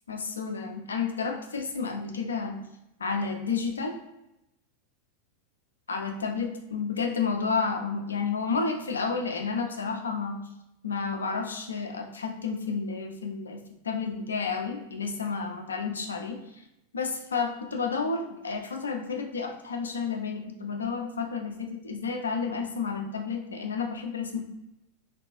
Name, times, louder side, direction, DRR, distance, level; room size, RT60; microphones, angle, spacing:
voice 1, 0.1-2.6 3.0-4.0 5.9-10.4 10.8-16.6 16.9-24.5, left 5 dB, 70° left, 3 dB, 0.4 m, -31 dB
2.5 x 2.2 x 2.5 m, 0.86 s
figure-of-eight pair, 90°, 0 cm